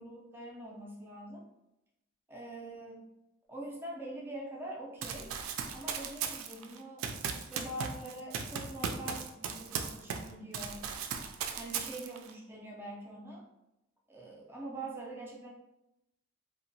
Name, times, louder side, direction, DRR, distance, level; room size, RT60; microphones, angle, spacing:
voice 1, 0.0-1.4 2.3-3.1 3.5-5.3 5.7-10.8 11.6-13.4 14.1-15.5, right 1 dB, 10° right, -3 dB, 0.4 m, -44 dB
Run, 5.0-10.3 10.5-12.3, right 6 dB, 90° right, 0.3 m, -37 dB
2.8 x 2.1 x 2.6 m, 0.90 s
head